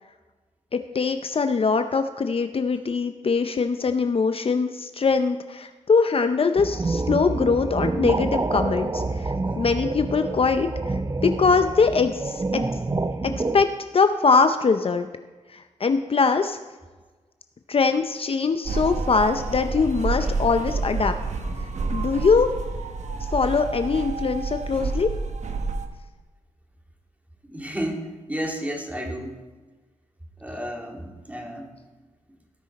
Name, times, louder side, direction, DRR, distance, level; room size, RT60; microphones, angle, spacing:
voice 1, 0.7-12.6 13.2-13.7 13.9-15.1 15.5-16.6 17.7-21.1 21.9-22.5 23.3-25.1, left 4 dB, 50° left, 8 dB, 0.6 m, -22 dB
sound 1, 6.6-13.6, right 3 dB, 30° right, 0.7 m, -27 dB
sound 2, 18.7-25.9, right 3 dB, 65° right, 1.0 m, -29 dB
voice 2, 27.4-29.4 30.4-31.7, equal, 10° right, 1 dB, 2.3 m, -32 dB
18.0 x 6.2 x 4.1 m, 1.3 s
cardioid pair, 60°, 13 cm